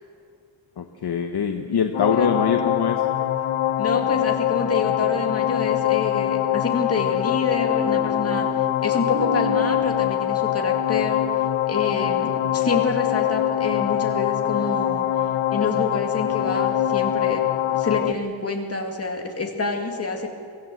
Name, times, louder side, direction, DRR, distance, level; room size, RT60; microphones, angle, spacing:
voice 1, 0.8-3.0, left 6 dB, 55° left, 5 dB, 1.0 m, -23 dB
sound 1, 1.9-18.1, left 12 dB, 90° left, 0.9 m, -23 dB
voice 2, 3.8-11.2 11.7-15.1 15.5-20.3, left 3 dB, 30° left, 2 dB, 2.2 m, -27 dB
sound 2, 4.0-9.8, right 2 dB, 45° right, 2.2 m, -36 dB
24.0 x 16.0 x 7.8 m, 2.3 s
wide cardioid pair, 165°, 47 cm